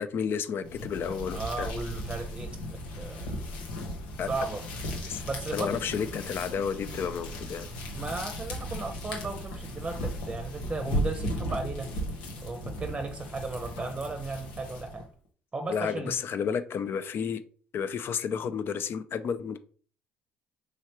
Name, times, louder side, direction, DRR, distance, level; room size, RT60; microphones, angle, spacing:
voice 1, 0.0-1.7 4.2-4.3 5.1-5.2 5.5-7.7 15.7-17.4 17.7-19.6, left 7 dB, 55° left, 11 dB, 0.5 m, -31 dB
sound 1, 0.6-15.1, equal, 90° left, 0.9 m, -36 dB
voice 2, 1.3-3.4 4.3-4.6 5.2-5.8 7.9-11.9 12.4-15.0 15.5-16.2, right 3 dB, 20° right, 7 dB, 0.7 m, -35 dB
4.8 x 3.2 x 2.9 m, 0.43 s
hypercardioid pair, 65°, 5 cm